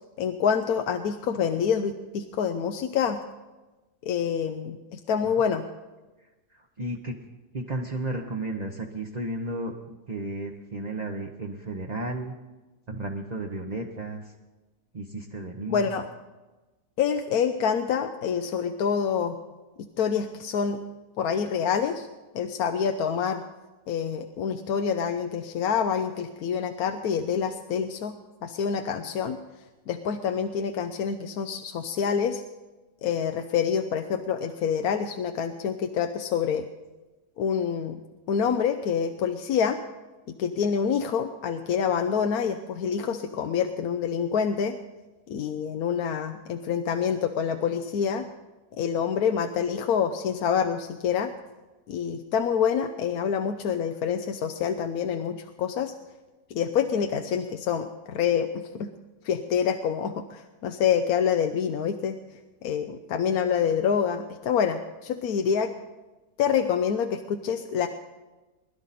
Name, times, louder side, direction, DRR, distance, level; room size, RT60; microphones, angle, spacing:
voice 1, 0.2-3.2 4.0-5.6 15.7-16.1 17.0-19.4 20.0-20.8 21.2-22.1 22.3-23.4 23.9-28.1 28.4-29.4 29.9-32.4 33.0-36.7 37.4-38.0 38.3-39.8 40.4-44.8 45.3-48.2 48.8-51.3 51.9-55.9 56.5-58.9 59.2-62.2 62.6-65.7 66.4-67.9, left 7 dB, 70° left, 6 dB, 1.1 m, -27 dB
voice 2, 6.5-7.2 7.5-9.8 10.1-12.4 12.9-14.3 14.9-15.9, right 2 dB, 30° right, 1 dB, 0.9 m, -33 dB
21.5 x 11.5 x 4.2 m, 1.1 s
omnidirectional pair, 1.7 m